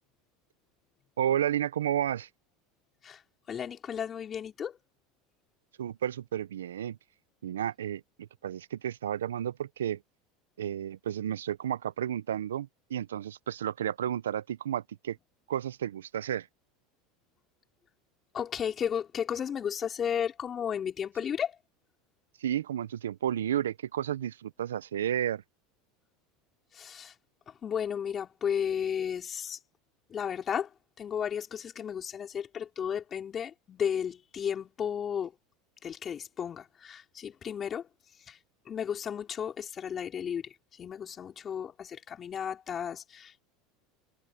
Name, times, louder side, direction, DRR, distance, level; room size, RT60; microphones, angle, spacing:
voice 1, 1.2-2.3 5.8-7.0 7.4-10.0 10.6-15.2 15.5-16.5 22.4-25.4, right 10 dB, 85° right, 0.7 m, -32 dB
voice 2, 3.5-4.8 18.3-21.6 26.7-27.1 27.5-29.6 30.1-35.3 35.8-37.9 38.2-38.4 38.7-43.4, left 8 dB, 35° left, 4.1 m, -34 dB
hypercardioid pair, 90°, 0 cm